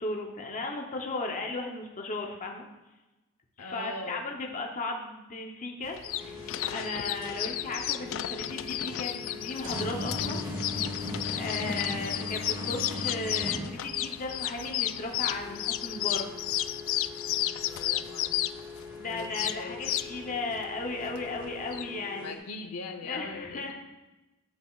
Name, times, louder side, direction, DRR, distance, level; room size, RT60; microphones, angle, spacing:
voice 1, 0.0-2.7 3.6-10.4 11.4-16.2 18.9-22.4 23.0-23.7, left 2 dB, 35° left, 1 dB, 0.8 m, -36 dB
voice 2, 3.6-4.4 17.6-18.4 19.0-19.9 22.2-23.7, left 3 dB, 85° left, 6 dB, 0.9 m, -41 dB
sound 1, 5.8-21.9, left 13 dB, 60° left, 0.3 m, -33 dB
sound 2, 6.1-22.4, left 2 dB, 15° right, 1.9 m, -40 dB
8.7 x 8.3 x 2.4 m, 1.1 s
head